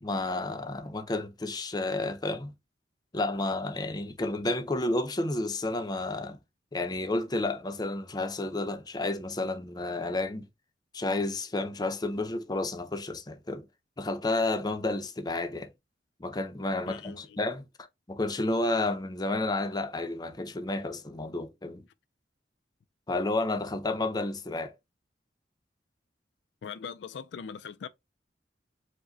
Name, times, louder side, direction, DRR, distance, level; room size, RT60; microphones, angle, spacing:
voice 1, 0.0-2.5 3.1-6.4 6.7-10.5 10.9-13.6 14.0-15.7 16.2-17.6 18.1-21.8 23.1-24.7, left 2 dB, 20° left, 0.5 m, -31 dB
voice 2, 16.9-17.4 26.6-27.9, left 6 dB, 75° left, 0.3 m, -41 dB
4.8 x 2.1 x 3.8 m
head